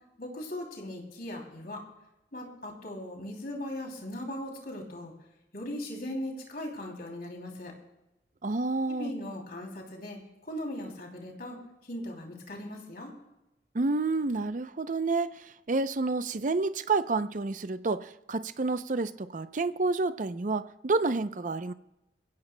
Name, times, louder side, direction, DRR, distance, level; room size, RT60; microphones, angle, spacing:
voice 1, 0.2-1.8 2.3-5.1 5.5-7.7 8.9-11.6 11.9-13.1, left 1 dB, 55° left, 1 dB, 2.9 m, -39 dB
voice 2, 8.4-9.1 13.7-15.3 15.7-21.7, right 3 dB, 45° right, 12 dB, 0.6 m, -29 dB
23.0 x 16.0 x 2.2 m, 0.93 s
head